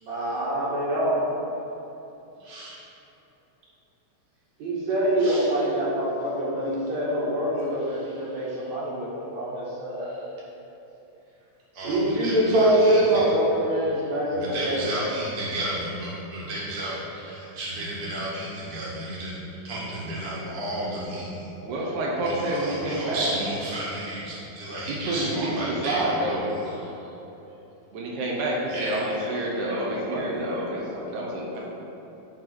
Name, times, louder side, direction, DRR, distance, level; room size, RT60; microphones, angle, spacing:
voice 1, 0.0-1.2 4.6-10.2 11.8-15.1, right 1 dB, 70° right, -7 dB, 3.2 m, -24 dB
voice 2, 2.4-2.8 5.2-5.7 7.5-8.7 10.1-10.2 11.7-13.3 13.8-13.9 14.3-19.4 19.6-27.1 28.7-31.6, right 1 dB, 35° right, -8 dB, 2.0 m, -34 dB
voice 3, 21.6-23.3 24.9-26.5 27.9-31.6, right 1 dB, 90° right, -3 dB, 2.5 m, -28 dB
11.5 x 4.0 x 4.6 m, 3.0 s
omnidirectional pair, 3.3 m